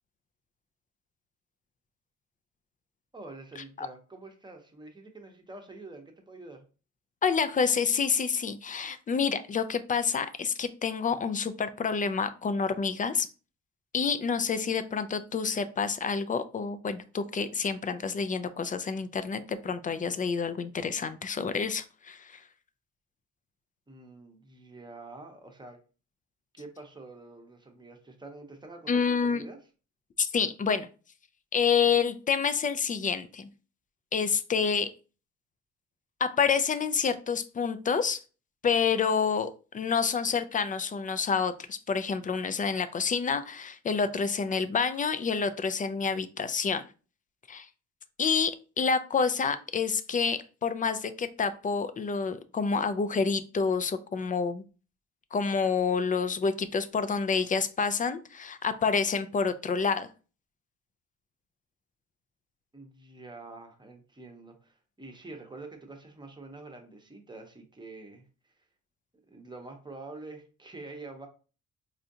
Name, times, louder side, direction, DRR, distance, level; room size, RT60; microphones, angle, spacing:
voice 1, 3.1-6.6 23.9-25.8 26.5-29.6 62.7-68.2 69.3-71.3, right 3 dB, 15° right, 4 dB, 0.8 m, -46 dB
voice 2, 7.2-13.3 13.9-22.4 28.9-29.4 30.2-30.9 31.5-33.5 34.1-34.9 36.2-38.2 38.6-46.8 47.5-47.7 48.2-54.6 55.3-60.1, left 5 dB, 25° left, 11 dB, 0.3 m, -28 dB
4.3 x 2.5 x 2.7 m, 0.35 s
cardioid pair, 90°, 30 cm